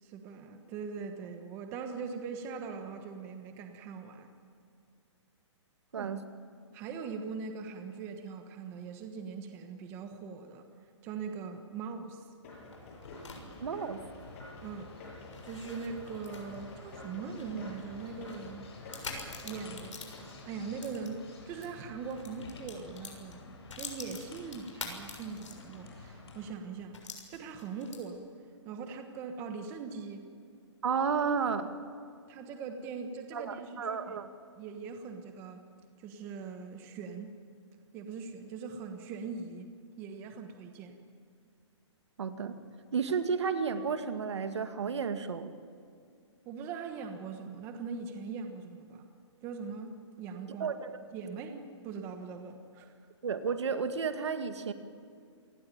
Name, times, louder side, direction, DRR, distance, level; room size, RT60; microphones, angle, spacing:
voice 1, 0.0-4.3 6.0-6.1 6.7-10.7 11.0-12.3 14.6-14.9 15.4-19.0 19.4-20.0 20.4-27.0 27.3-28.2 28.6-30.3 32.3-34.2 34.5-35.7 36.0-37.3 37.9-41.0 46.4-49.0 49.4-50.7 51.1-52.9, right 5 dB, 15° right, 6 dB, 1.3 m, -41 dB
sound 1, 12.4-21.5, left 2 dB, 30° left, 7.4 m, -50 dB
sound 2, 12.5-21.7 22.0-25.9 26.3-26.4 26.9-28.3, left 4 dB, 85° left, 6.9 m, -47 dB
sound 3, 13.0-26.5, left 3 dB, 60° left, 7.7 m, -52 dB
voice 2, 13.6-14.0 30.8-31.7 33.3-34.3 42.2-42.6 42.9-45.5 50.6-51.0 53.2-54.7, right 6 dB, 65° right, 8 dB, 2.1 m, -32 dB
28.5 x 19.5 x 9.1 m, 2.3 s
hypercardioid pair, 170°, 16 cm